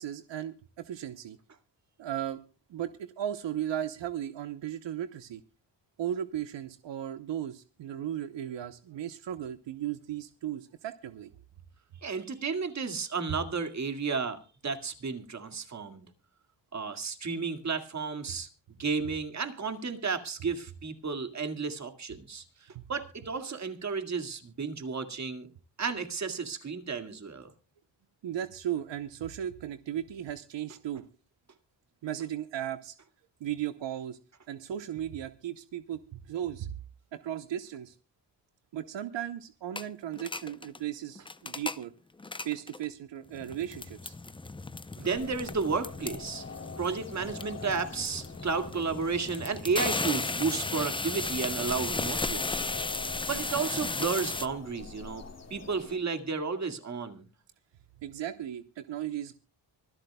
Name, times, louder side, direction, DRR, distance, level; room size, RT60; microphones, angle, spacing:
voice 1, 0.0-1.4 2.0-2.4 2.7-5.4 6.0-11.3 22.7-22.9 28.2-31.0 32.0-32.9 33.4-34.2 34.5-36.7 37.1-37.9 38.7-41.9 42.4-44.1 58.0-59.4, right 11 dB, 80° right, 12 dB, 0.9 m, -36 dB
voice 2, 12.0-16.1 16.7-18.5 18.8-25.5 25.8-27.5 45.0-46.4 46.8-52.7 53.3-55.3 55.5-57.3, right 5 dB, 40° right, 7 dB, 2.1 m, -32 dB
sound 1, 39.8-39.9 40.1-40.8 41.2-41.8 42.2-42.8 43.3-54.5, left 3 dB, 10° left, 0.6 m, -35 dB
sound 2, 45.1-56.0, left 4 dB, 35° left, 2.4 m, -45 dB
25.0 x 12.0 x 2.2 m, 0.35 s
wide cardioid pair, 140°, 43 cm